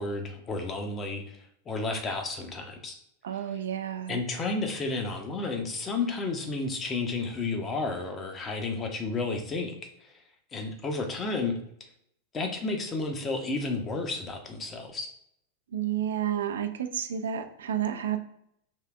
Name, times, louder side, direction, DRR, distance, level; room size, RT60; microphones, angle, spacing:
voice 1, 0.0-3.0 4.1-9.7 10.0-10.1 10.5-11.5 12.3-15.1, left 3 dB, 25° left, 4 dB, 0.7 m, -32 dB
voice 2, 3.2-4.2 15.7-18.2, right 9 dB, 65° right, 7 dB, 0.3 m, -30 dB
4.4 x 3.2 x 2.3 m, 0.74 s
figure-of-eight pair, 90°, 0 cm